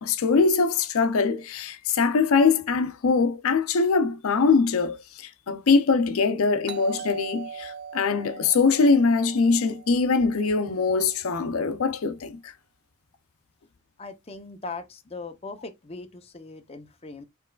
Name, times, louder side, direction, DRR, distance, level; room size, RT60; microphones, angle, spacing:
voice 1, 0.0-12.5, left 4 dB, 75° left, 0.5 m, -22 dB
Doorbell, 6.7-11.3, right 7 dB, 50° right, 0.4 m, -41 dB
voice 2, 14.0-17.2, left 3 dB, 25° left, 0.7 m, -39 dB
4.5 x 3.1 x 2.3 m
head